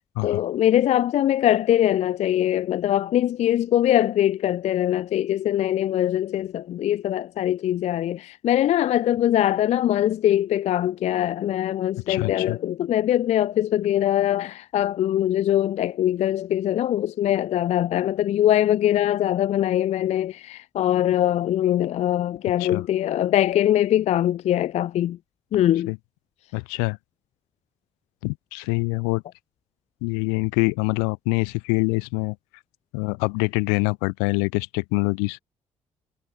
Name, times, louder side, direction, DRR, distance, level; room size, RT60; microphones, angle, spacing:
voice 1, 0.2-25.2 25.5-25.9, left 12 dB, 40° left, 0.3 m, -22 dB
voice 2, 12.1-12.6 22.6-22.8 25.9-26.0 26.5-27.0 28.2-29.2 30.0-32.4 32.9-35.4, left 40 dB or more, 70° left, 0.8 m, -25 dB
figure-of-eight pair, 45°, 17 cm